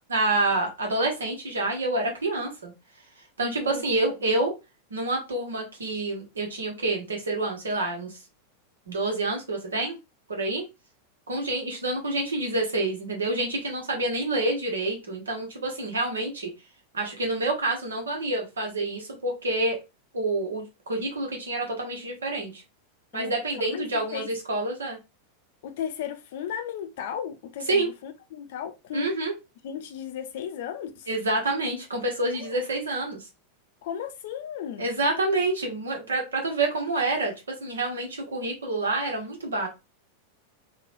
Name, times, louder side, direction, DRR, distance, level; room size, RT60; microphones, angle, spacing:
voice 1, 0.1-2.7 3.4-4.5 4.9-8.2 8.9-10.0 10.3-10.6 11.3-16.5 16.9-19.8 20.1-22.6 23.1-25.0 27.7-27.9 28.9-29.3 31.1-33.3 34.8-39.7, right 2 dB, 70° right, 1.0 m, -28 dB
voice 2, 3.4-4.1 23.1-24.3 25.6-29.1 29.6-31.1 32.3-32.6 33.8-34.9, left 9 dB, 55° left, 0.5 m, -36 dB
3.0 x 2.2 x 2.5 m
figure-of-eight pair, 90°, 0 cm